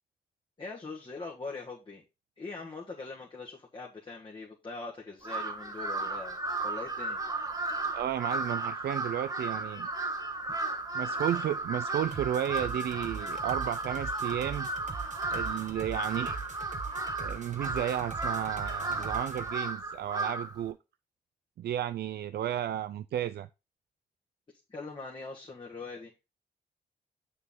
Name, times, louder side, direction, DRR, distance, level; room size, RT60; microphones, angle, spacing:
voice 1, 0.6-2.0 2.4-7.2 24.7-26.1, left 3 dB, 30° left, 1.5 m, -42 dB
Crow, 5.2-20.6, right 2 dB, 20° right, 1.3 m, -34 dB
voice 2, 7.9-9.9 10.9-14.7 15.3-16.4 17.2-20.8 21.6-23.5, right 11 dB, 80° right, 0.4 m, -33 dB
sound 1, 12.1-19.5, right 5 dB, 45° right, 1.2 m, -42 dB
6.9 x 6.7 x 3.7 m
wide cardioid pair, 110°, 17 cm